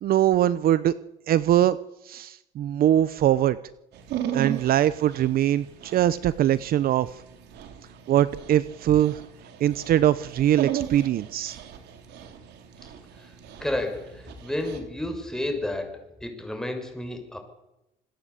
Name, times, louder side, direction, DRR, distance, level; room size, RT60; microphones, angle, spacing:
voice 1, 0.0-0.9 1.3-1.8 2.0-3.6 4.3-7.1 8.1-9.2 9.6-11.6, right 12 dB, 60° right, 16 dB, 0.9 m, -22 dB
Dog, 3.9-14.8, right 10 dB, 80° right, 3.7 m, -36 dB
voice 2, 13.6-17.4, left 1 dB, 5° left, 5 dB, 6.5 m, -31 dB
26.5 x 21.5 x 8.4 m, 0.92 s
cardioid pair, 110°, 17 cm